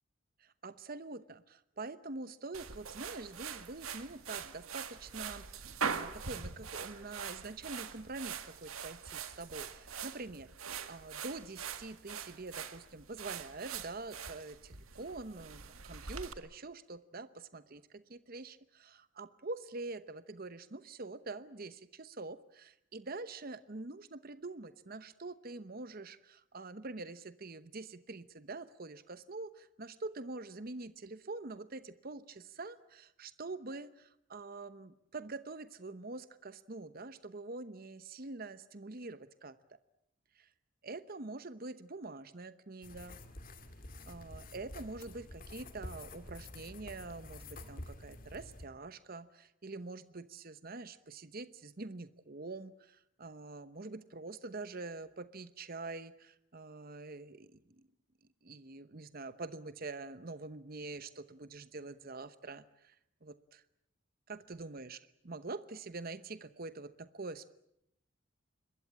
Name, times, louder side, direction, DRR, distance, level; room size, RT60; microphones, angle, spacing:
voice 1, 0.4-39.8 40.3-40.5 40.8-43.2 44.1-57.8 58.4-63.0 63.2-63.6 64.3-65.0 65.2-67.5, right 3 dB, 45° right, 13 dB, 0.9 m, -45 dB
sound 1, 2.5-16.3, right 6 dB, 85° right, 1.8 m, -43 dB
sound 2, 42.8-48.7, left 1 dB, 40° left, 2.3 m, -49 dB
26.0 x 21.5 x 8.7 m, 0.78 s
head